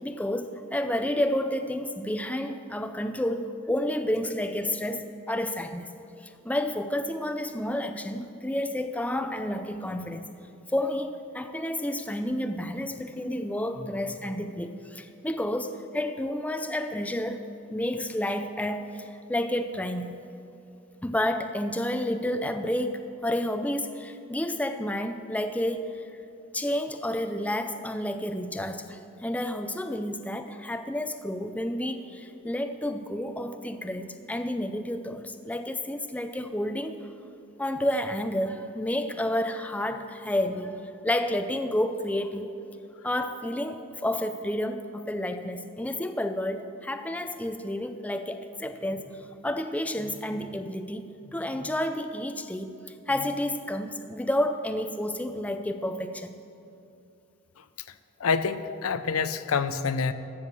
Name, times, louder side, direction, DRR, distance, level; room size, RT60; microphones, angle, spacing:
voice 1, 0.0-5.9 6.2-10.3 10.7-17.4 17.7-20.2 21.0-26.0 26.5-37.0 37.6-42.5 43.0-52.8 53.1-56.4, left 1 dB, 5° left, 8 dB, 0.4 m, -30 dB
voice 2, 58.2-60.1, left 5 dB, 85° left, 12 dB, 0.6 m, -27 dB
14.5 x 6.3 x 7.3 m, 2.6 s
head